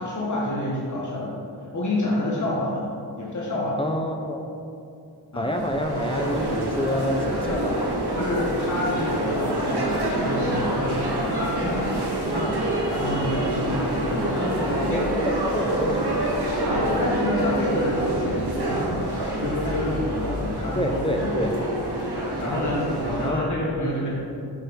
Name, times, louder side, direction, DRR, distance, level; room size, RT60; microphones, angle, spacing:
voice 1, 0.0-1.4 1.7-2.8 3.2-3.8 5.3-5.5 7.5-7.6 8.1-11.9 12.9-15.0 16.7-20.8 21.2-21.3 21.6-21.7 22.0-24.1, left 1 dB, 45° left, -6 dB, 1.5 m, -28 dB
voice 2, 3.8-4.5 5.3-7.7 12.3-12.6 14.3-16.3 16.8-17.0 20.7-21.5 23.0-23.5, equal, 15° left, 3 dB, 0.8 m, -28 dB
sound 1, 5.5-23.3, right 1 dB, 70° right, 1.3 m, -27 dB
6.7 x 4.2 x 5.2 m, 2.5 s
cardioid pair, 50°, 41 cm